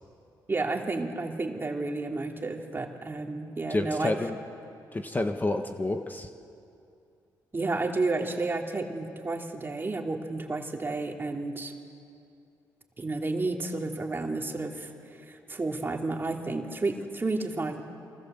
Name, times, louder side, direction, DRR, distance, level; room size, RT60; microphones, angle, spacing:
voice 1, 0.5-4.2 7.5-11.7 13.0-17.8, right 3 dB, 30° right, 2 dB, 3.0 m, -31 dB
voice 2, 3.7-4.3 4.9-6.3, left 2 dB, 25° left, 5 dB, 1.5 m, -29 dB
28.0 x 24.0 x 7.7 m, 2.6 s
cardioid pair, 70°, 8 cm